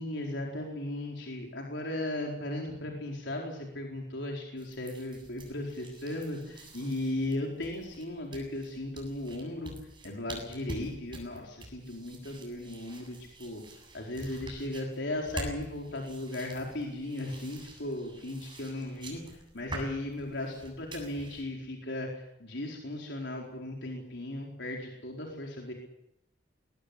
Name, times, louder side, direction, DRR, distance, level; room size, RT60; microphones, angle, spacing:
voice 1, 0.0-9.7 10.0-25.7, left 1 dB, 75° left, 0 dB, 4.6 m, -36 dB
sound 1, 4.6-21.4, right 1 dB, 25° right, 7.9 m, -47 dB
22.0 x 19.0 x 8.6 m, 0.83 s
head